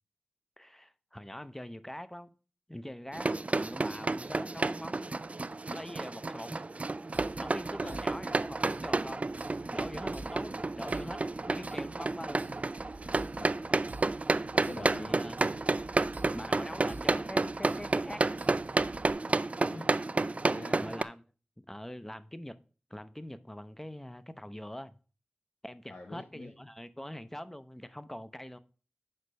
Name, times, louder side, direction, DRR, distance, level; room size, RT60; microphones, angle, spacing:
voice 1, 0.6-2.3 2.7-5.2 5.7-6.6 7.4-9.3 9.7-11.2 11.5-12.4 14.7-15.6 16.3-18.2 20.8-21.2 21.7-22.5 22.9-25.0 25.6-28.6, left 1 dB, 10° left, 0.6 m, -43 dB
sound 1, 3.1-21.0, right 3 dB, 40° right, 0.3 m, -31 dB
sound 2, 7.1-19.1, right 3 dB, 65° right, 0.9 m, -49 dB
voice 2, 13.4-13.8 14.5-15.2 19.1-20.0 20.4-20.9 25.9-26.5, left 3 dB, 75° left, 0.9 m, -46 dB
6.5 x 5.1 x 5.3 m
wide cardioid pair, 60°, 3 cm